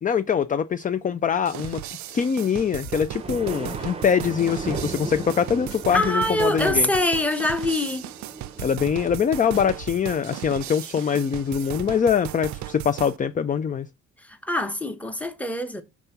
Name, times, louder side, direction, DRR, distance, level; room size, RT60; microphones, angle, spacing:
voice 1, 0.0-1.8 2.1-6.9 8.6-13.9, left 7 dB, 25° left, 0.4 m, -23 dB
sound 1, 1.5-13.2, right 14 dB, 70° right, 0.5 m, -36 dB
sound 2, 2.4-10.4, right 4 dB, 20° right, 0.7 m, -38 dB
sound 3, 2.8-3.0 3.5-3.9 4.7-5.2 5.7-5.8 6.4-6.8 7.1-7.8 8.6-8.7 9.1-9.2 9.5-9.9 10.3-10.4, equal, 50° left, 1.4 m, -42 dB
voice 2, 5.9-8.1 14.3-15.8, left 1 dB, 5° left, 1.0 m, -24 dB
5.4 x 3.6 x 5.7 m
cardioid pair, 90°, 30 cm